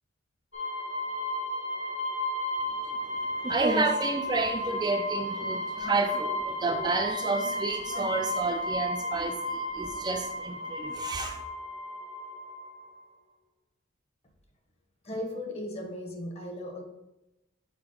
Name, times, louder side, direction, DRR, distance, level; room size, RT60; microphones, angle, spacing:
sound 1, 0.5-13.0, left 1 dB, 70° left, 2.2 m, -33 dB
voice 1, 3.4-11.4, right 3 dB, 20° right, 4 dB, 0.4 m, -30 dB
voice 2, 15.0-16.8, left 1 dB, 30° left, 3 dB, 1.1 m, -36 dB
5.9 x 4.7 x 3.8 m, 0.92 s
head